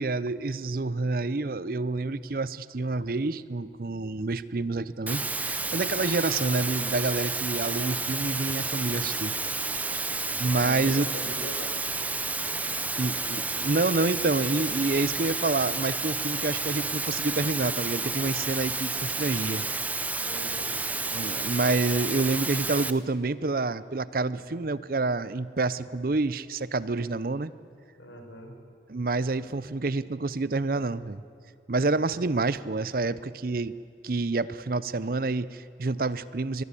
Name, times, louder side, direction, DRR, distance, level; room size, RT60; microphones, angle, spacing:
voice 1, 0.0-10.0 10.4-11.1 13.0-19.6 21.1-27.5 28.9-31.2 31.7-33.7 34.0-36.6, right 3 dB, 50° right, 17 dB, 0.6 m, -28 dB
sound 1, 5.1-22.9, right 3 dB, 10° right, 0.6 m, -31 dB
voice 2, 10.3-11.8 12.4-12.6 20.2-20.9 28.0-28.6, equal, 90° left, 4 dB, 4.4 m, -42 dB
23.0 x 20.5 x 8.4 m, 2.6 s
head